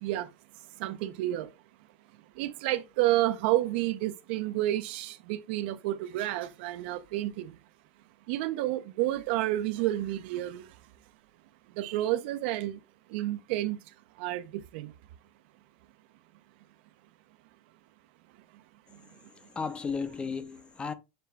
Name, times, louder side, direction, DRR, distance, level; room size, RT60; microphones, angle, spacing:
voice 1, 0.8-1.5 2.4-7.5 8.3-10.7 11.8-12.8 13.1-13.8 14.2-14.9, right 15 dB, 65° right, 0.4 m, -30 dB
voice 2, 19.3-20.9, left 5 dB, 15° left, 0.4 m, -34 dB
6.5 x 2.2 x 3.3 m
supercardioid pair, 135°, 6 cm